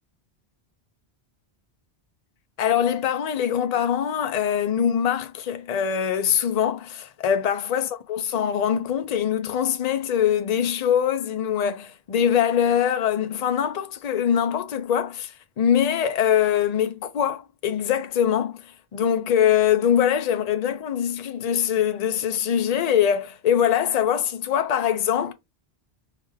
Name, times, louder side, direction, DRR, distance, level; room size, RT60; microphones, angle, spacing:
voice 1, 2.6-18.6 18.9-25.3, left 9 dB, 55° left, 0.5 m, -23 dB
3.0 x 2.4 x 3.1 m
omnidirectional pair, 1.1 m